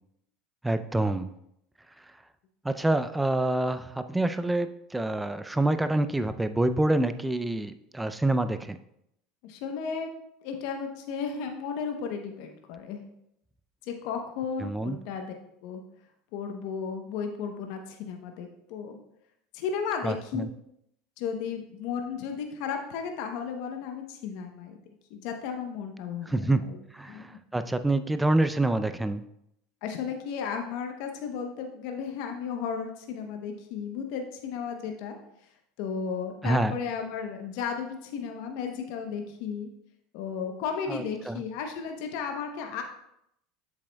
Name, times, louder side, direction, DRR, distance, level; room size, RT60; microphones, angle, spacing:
voice 1, 0.6-1.3 2.6-8.8 14.6-15.0 20.0-20.5 26.3-26.6 26.9-29.2 36.4-36.7 40.9-41.4, right 2 dB, 10° right, 11 dB, 0.4 m, -27 dB
voice 2, 9.4-10.1 10.4-13.0 13.8-15.3 15.6-15.8 16.3-19.0 19.5-20.5 21.2-24.8 25.1-26.8 27.1-27.4 29.8-35.1 35.8-39.7 40.1-42.8, left 6 dB, 70° left, 4 dB, 0.8 m, -34 dB
7.7 x 7.1 x 2.2 m, 0.78 s
supercardioid pair, 105°, 0 cm